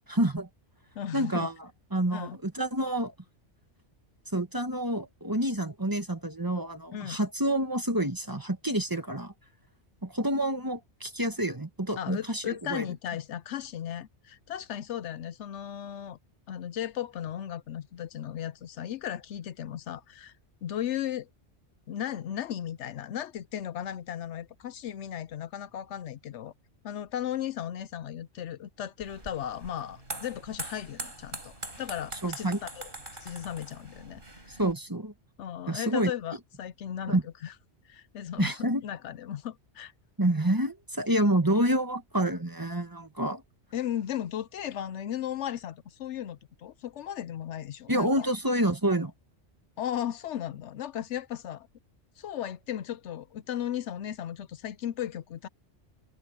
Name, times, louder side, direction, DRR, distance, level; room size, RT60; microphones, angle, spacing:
voice 1, 0.1-0.5 1.1-1.5 1.9-3.1 4.3-9.3 10.0-12.9 32.2-32.6 34.5-35.1 35.7-36.1 37.1-37.2 38.4-38.8 40.2-43.4 47.9-49.1, right 1 dB, 15° right, 1.6 m, -28 dB
voice 2, 1.0-1.5 2.1-2.4 6.9-7.2 12.0-16.2 16.5-20.3 20.6-21.3 21.9-26.5 26.8-32.9 33.2-34.2 34.5-34.6 35.4-37.5 37.9-39.9 43.7-48.3 49.8-51.7 52.2-55.5, left 10 dB, 75° left, 0.9 m, -36 dB
sound 1, 29.0-34.7, right 2 dB, 45° right, 4.7 m, -42 dB
omnidirectional pair, 1.2 m